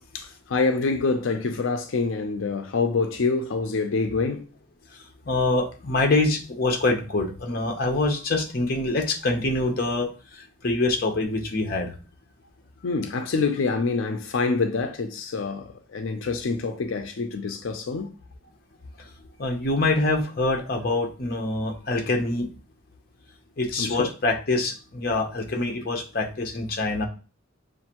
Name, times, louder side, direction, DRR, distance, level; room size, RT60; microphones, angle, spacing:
voice 1, 0.1-4.4 12.8-18.1 23.8-24.1, left 4 dB, 90° left, 0.5 m, -26 dB
voice 2, 5.3-11.9 19.4-22.5 23.6-27.1, left 2 dB, 50° left, 0.8 m, -25 dB
6.4 x 2.5 x 2.9 m
head